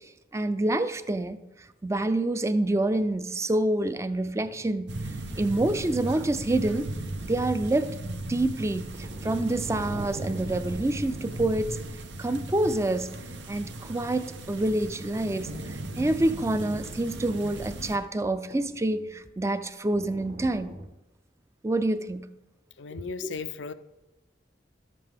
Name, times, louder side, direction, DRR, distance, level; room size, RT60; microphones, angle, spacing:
voice 1, 0.3-1.4 1.8-5.0 5.4-6.9 7.2-11.8 12.2-13.1 13.5-20.8 21.6-22.3 23.2-23.3, right 1 dB, 15° right, 0.4 m, -27 dB
sound 1, 2.9-3.2 3.9-7.8 8.9-12.0 13.0-17.0 17.3-17.4 18.5-19.4 19.9-20.9, right 1 dB, 50° right, 1.1 m, -46 dB
sound 2, 4.9-18.0, right 1 dB, 80° right, 0.8 m, -37 dB
voice 2, 22.8-23.7, left 5 dB, 90° left, 0.5 m, -36 dB
11.5 x 7.6 x 3.5 m
head